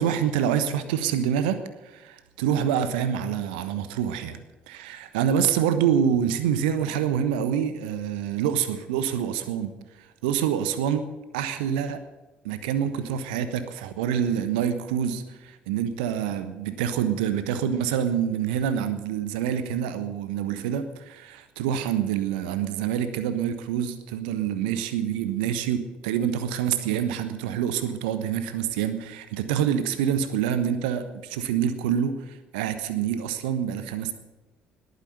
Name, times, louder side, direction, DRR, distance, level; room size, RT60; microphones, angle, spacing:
voice 1, 0.0-4.4 4.7-9.7 10.0-11.1 11.3-12.0 12.4-34.1, right 9 dB, 70° right, 11 dB, 1.1 m, -26 dB
20.0 x 9.5 x 6.7 m, 1.1 s
figure-of-eight pair, 50°, 5 cm